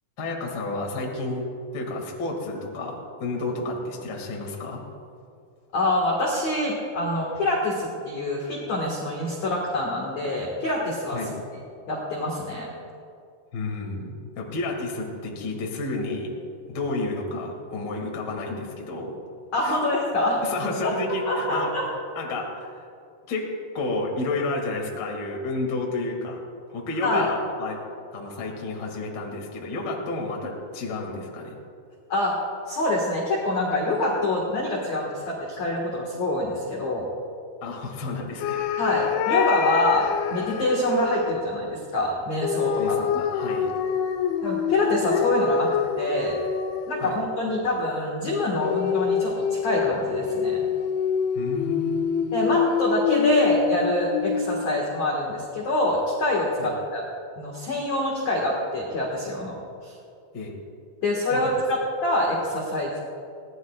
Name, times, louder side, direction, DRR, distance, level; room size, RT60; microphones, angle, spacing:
voice 1, 0.2-1.5 1.7-4.8 11.1-11.3 13.5-16.3 16.7-19.2 19.6-19.8 20.4-21.7 22.1-22.8 23.3-23.5 23.7-26.4 26.7-27.8 28.1-31.6 37.6-38.6 42.8-43.7 47.0-47.2 51.3-52.5 56.6-56.7 60.3-60.5 61.3-61.5, left 2 dB, 45° left, -1 dB, 1.3 m, -31 dB
voice 2, 5.7-11.2 11.9-12.7 19.5-20.4 20.8-20.9 21.3-21.8 27.0-27.3 32.1-37.1 38.8-43.0 44.4-46.4 46.9-50.6 52.3-57.0 57.4-59.5 59.8-59.9 61.0-63.0, left 1 dB, 65° left, -3 dB, 1.8 m, -25 dB
sound 1, 38.4-41.4 42.4-47.2 48.6-54.7, left 7 dB, 85° left, 2.7 m, -26 dB
22.0 x 17.5 x 2.4 m, 2.4 s
omnidirectional pair, 5.9 m